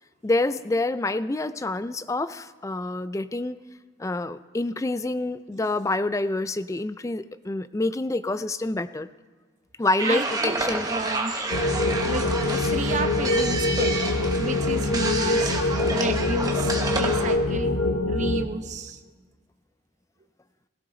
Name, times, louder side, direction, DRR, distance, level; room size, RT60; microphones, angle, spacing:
voice 1, 0.2-3.6 4.0-9.1 9.8-10.9 12.4-12.6, left 2 dB, 15° left, 13 dB, 0.3 m, -27 dB
sound 1, 10.0-17.4, right 2 dB, 20° right, 1.1 m, -30 dB
voice 2, 10.0-10.6 10.8-11.4 12.0-12.3 12.7-14.0 14.4-15.6 15.9-17.8 18.1-19.0, right 2 dB, 35° right, 7 dB, 0.8 m, -31 dB
sound 2, 11.5-18.5, left 2 dB, 85° left, 1.0 m, -24 dB
16.5 x 16.5 x 3.9 m, 1.4 s
head